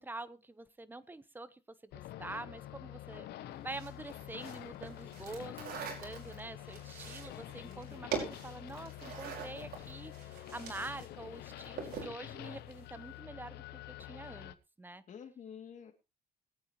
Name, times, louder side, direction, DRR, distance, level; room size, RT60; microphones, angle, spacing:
voice 1, 0.0-15.0, right 2 dB, 10° right, 14 dB, 1.1 m, -46 dB
sound 1, 1.9-14.5, left 14 dB, 75° left, 1.0 m, -47 dB
voice 2, 3.1-3.7 7.6-8.3 15.1-15.9, left 7 dB, 45° left, 6 dB, 2.8 m, -51 dB
sound 2, 3.7-11.1 11.4-12.2, right 6 dB, 65° right, 5.2 m, -43 dB
21.5 x 9.0 x 3.2 m, 0.29 s
cardioid pair, 110°, 17 cm